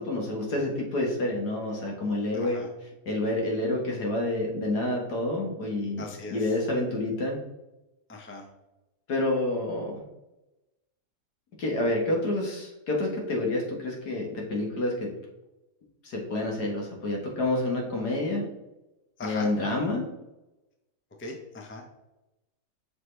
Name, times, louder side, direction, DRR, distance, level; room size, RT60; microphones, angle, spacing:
voice 1, 0.0-2.6 3.1-7.4 9.1-10.0 11.6-15.1 16.0-18.5 19.2-20.1, left 2 dB, 75° left, -1 dB, 2.0 m, -28 dB
voice 2, 2.3-2.7 6.0-6.5 8.1-8.5 19.2-19.5 21.2-21.8, left 2 dB, 15° left, 1 dB, 0.5 m, -39 dB
6.2 x 5.0 x 3.2 m, 0.98 s
omnidirectional pair, 1.7 m